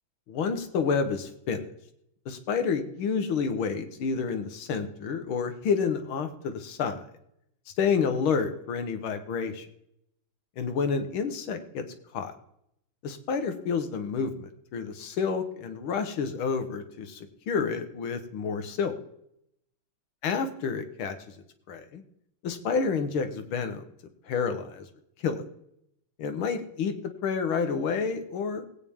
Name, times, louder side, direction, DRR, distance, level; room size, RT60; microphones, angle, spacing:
voice 1, 0.3-1.7 2.3-7.1 7.8-9.7 10.6-11.9 12.1-12.3 13.0-18.9 20.2-21.2 21.7-22.0 22.4-23.8 24.2-24.9 25.2-25.4 26.2-27.0 27.2-28.7, left 5 dB, 90° left, 8 dB, 2.0 m, -29 dB
20.5 x 8.8 x 3.6 m, 0.77 s
omnidirectional pair, 2.2 m